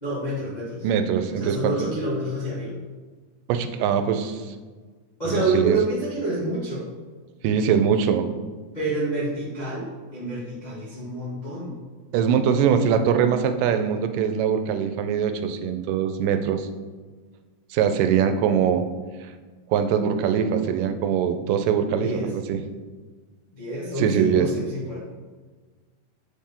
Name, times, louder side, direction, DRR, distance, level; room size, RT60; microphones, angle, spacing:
voice 1, 0.0-0.9 1.4-2.7 5.2-6.9 8.7-11.8 22.0-22.3 23.5-25.0, right 2 dB, 55° left, -9 dB, 0.4 m, -28 dB
voice 2, 0.8-1.7 3.5-4.4 5.3-5.8 7.4-8.3 12.1-16.7 17.7-18.9 19.7-22.6 24.0-24.5, right 7 dB, 85° right, 8 dB, 2.2 m, -22 dB
7.7 x 4.2 x 3.7 m, 1.4 s
omnidirectional pair, 3.8 m